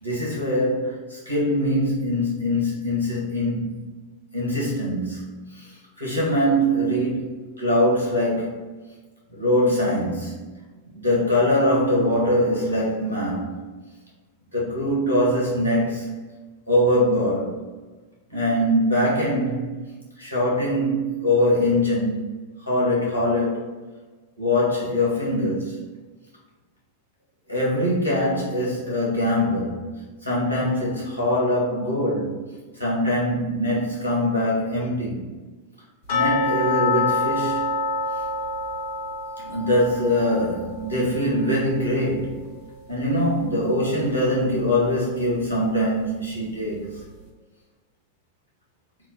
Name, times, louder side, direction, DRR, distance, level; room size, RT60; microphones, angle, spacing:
voice 1, 0.0-3.9 4.3-5.6 6.0-8.6 9.3-10.4 10.9-13.6 14.5-16.3 16.7-17.6 18.3-19.8 20.2-22.3 22.7-23.7 24.4-25.8 27.5-32.4 32.8-35.3 36.1-37.7 39.4-42.4 42.9-47.0, left 1 dB, 85° right, 1.4 m, -23 dB
sound 1, 36.1-42.9 43.2-43.3 43.8-43.9 44.5-44.6, left 3 dB, 50° left, 1.2 m, -27 dB
3.7 x 2.2 x 4.2 m
figure-of-eight pair, 90°, 0 cm